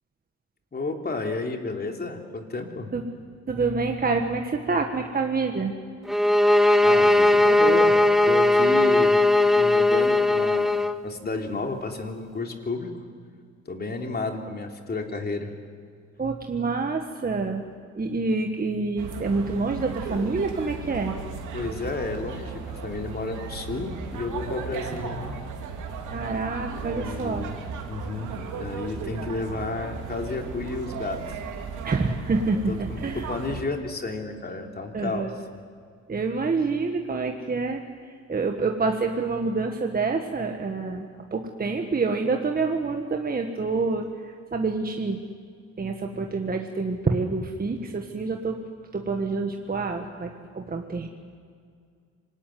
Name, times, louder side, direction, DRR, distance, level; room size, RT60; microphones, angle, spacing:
voice 1, 0.7-2.9 6.8-8.0 8.2-9.2 9.6-12.9 13.6-15.5 21.5-25.3 26.7-27.6 27.9-31.4 32.5-35.3 46.1-46.3, left 3 dB, 30° left, 3 dB, 3.3 m, -32 dB
voice 2, 3.5-5.7 16.2-17.6 17.9-21.2 26.1-27.5 31.8-33.3 34.9-35.3 36.1-45.2 45.8-48.6 48.9-51.1, right 4 dB, 30° right, 3 dB, 1.7 m, -27 dB
sound 1, 6.1-11.0, left 2 dB, ahead, 0.8 m, -18 dB
sound 2, 19.0-33.6, right 5 dB, 85° right, 3.0 m, -36 dB
26.0 x 19.0 x 9.6 m, 2.2 s
cardioid pair, 90°, 30 cm